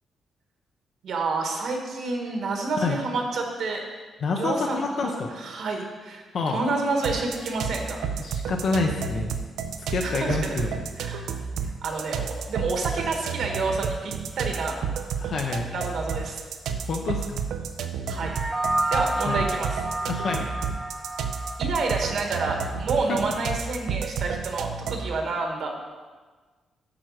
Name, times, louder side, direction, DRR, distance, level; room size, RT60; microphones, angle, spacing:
voice 1, 1.0-3.8 4.4-8.0 10.0-10.6 11.0-11.4 11.8-14.8 15.7-16.4 18.1-18.3 18.9-19.8 21.6-25.7, right 3 dB, 55° right, 2 dB, 1.3 m, -29 dB
voice 2, 4.2-5.3 6.3-6.6 8.2-9.4 9.9-10.8 15.2-15.7 16.9-17.4 19.2-19.5 20.1-20.5 23.1-23.2, left 4 dB, 50° left, 1 dB, 0.6 m, -27 dB
sound 1, 7.0-25.2, right 6 dB, 85° right, 0.6 m, -31 dB
sound 2, 18.2-22.8, right 1 dB, 10° right, 0.4 m, -30 dB
8.8 x 4.6 x 6.2 m, 1.4 s
cardioid pair, 165°, 0 cm